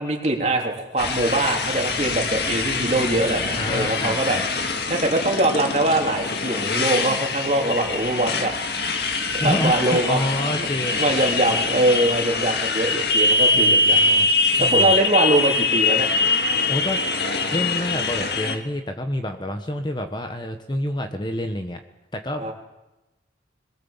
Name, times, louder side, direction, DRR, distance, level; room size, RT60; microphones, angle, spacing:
voice 1, 0.0-4.4 4.9-8.5 9.4-10.2 10.6-14.3 14.6-16.1 22.4-22.5, right 1 dB, 35° right, 1 dB, 3.1 m, -23 dB
Motorcycle, 1.0-18.6, left 3 dB, 55° left, 2.0 m, -23 dB
voice 2, 3.5-4.4 9.4-10.9 13.5-14.3 14.6-14.9 16.7-17.0 17.5-21.8 22.1-22.5, left 1 dB, 25° left, 6 dB, 1.2 m, -28 dB
22.5 x 21.5 x 7.3 m, 1.0 s
head